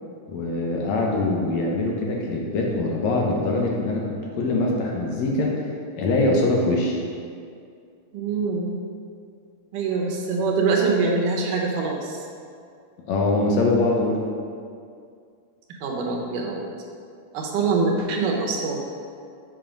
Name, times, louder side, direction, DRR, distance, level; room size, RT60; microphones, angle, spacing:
voice 1, 0.3-4.0 4.3-5.7 6.0-7.0 13.1-14.2, left 2 dB, 70° left, -1 dB, 2.0 m, -23 dB
voice 2, 8.1-8.7 9.7-12.2 15.8-16.6 17.3-18.9, right 4 dB, 85° right, 0 dB, 2.6 m, -24 dB
7.5 x 5.4 x 5.1 m, 2.3 s
omnidirectional pair, 3.6 m